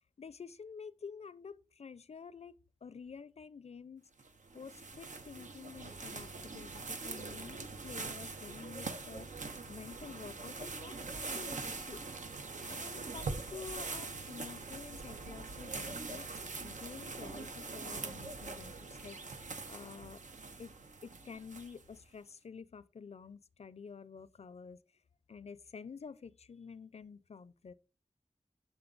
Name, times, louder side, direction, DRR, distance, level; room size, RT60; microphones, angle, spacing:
voice 1, 0.2-4.1 4.5-9.3 9.7-12.0 12.7-16.3 16.6-20.2 20.6-20.7 21.0-24.8 25.3-27.7, left 5 dB, 60° left, 0.4 m, -50 dB
sound 1, 4.2-22.0, right 3 dB, 85° right, 0.7 m, -43 dB
6.9 x 3.8 x 3.9 m
wide cardioid pair, 50°, 13 cm